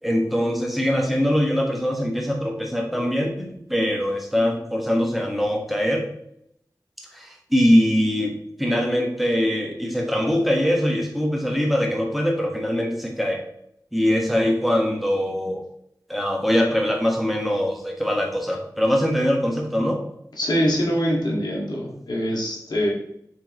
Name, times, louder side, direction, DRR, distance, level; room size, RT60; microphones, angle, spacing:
voice 1, 0.0-6.0 7.0-13.4 13.9-15.6 16.1-20.0, equal, ahead, 0 dB, 1.5 m, -22 dB
voice 2, 20.4-22.9, equal, 90° left, -3 dB, 1.9 m, -23 dB
6.8 x 5.3 x 3.1 m, 0.75 s
wide cardioid pair, 70°, 7 cm